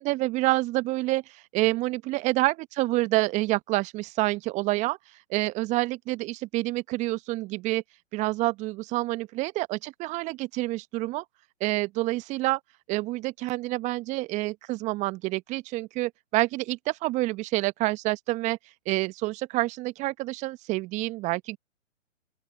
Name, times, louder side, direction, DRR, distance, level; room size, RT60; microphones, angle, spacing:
voice 1, 0.0-5.0 5.3-7.8 8.1-11.2 11.6-12.6 12.9-18.6 18.9-21.6, right 20 dB, 20° right, 1.1 m, -28 dB
open air
figure-of-eight pair, 125°, 39 cm